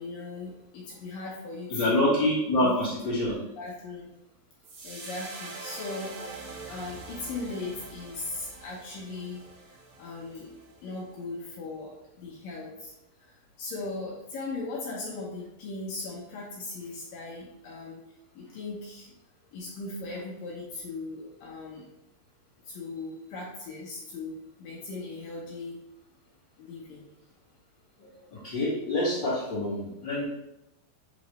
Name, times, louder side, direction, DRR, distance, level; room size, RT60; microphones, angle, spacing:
voice 1, 0.0-2.2 2.6-2.7 3.0-3.2 3.6-4.1 4.8-12.9 13.2-18.0 18.4-19.1 19.5-21.9 22.7-25.8 26.6-27.0, left 3 dB, 70° left, -4 dB, 2.3 m, -38 dB
voice 2, 1.7-3.4 28.0-30.2, left 1 dB, 35° left, -13 dB, 2.1 m, -26 dB
sound 1, 4.6-11.0, right 3 dB, 65° right, 2.0 m, -44 dB
7.9 x 3.8 x 3.1 m, 0.88 s
omnidirectional pair, 4.8 m